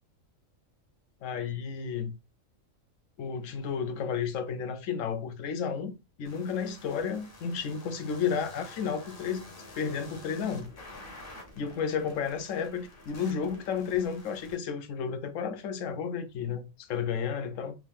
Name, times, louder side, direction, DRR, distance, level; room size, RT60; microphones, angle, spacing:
voice 1, 1.2-2.2 3.2-5.9 6.2-9.4 9.8-10.7 11.6-17.8, left 6 dB, 70° left, 1.0 m, -32 dB
sound 1, 6.2-14.6, left 2 dB, 45° left, 1.1 m, -49 dB
3.6 x 2.7 x 3.4 m
omnidirectional pair, 1.4 m